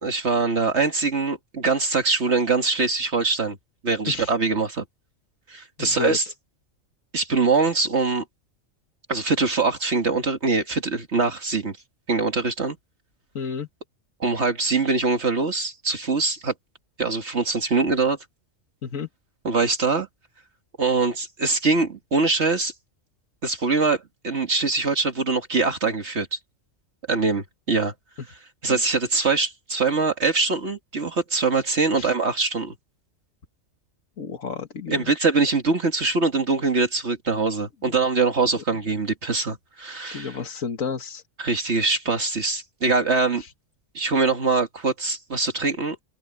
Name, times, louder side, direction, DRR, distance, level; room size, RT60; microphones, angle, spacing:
voice 1, 0.0-3.6 3.8-4.8 5.5-6.2 7.1-8.2 9.1-11.8 12.1-12.8 14.2-16.5 17.0-18.2 19.4-20.1 20.8-22.7 23.4-26.4 27.1-27.9 28.3-32.8 34.9-40.4 41.4-43.4 43.9-46.0, right 4 dB, 55° right, 2.0 m, -23 dB
voice 2, 5.8-6.2 13.4-13.7 18.8-19.1 28.7-28.8 31.9-32.1 34.2-35.1 37.8-38.0 38.6-38.7 40.1-41.2, left 6 dB, 80° left, 2.0 m, -31 dB
open air
omnidirectional pair, 1.4 m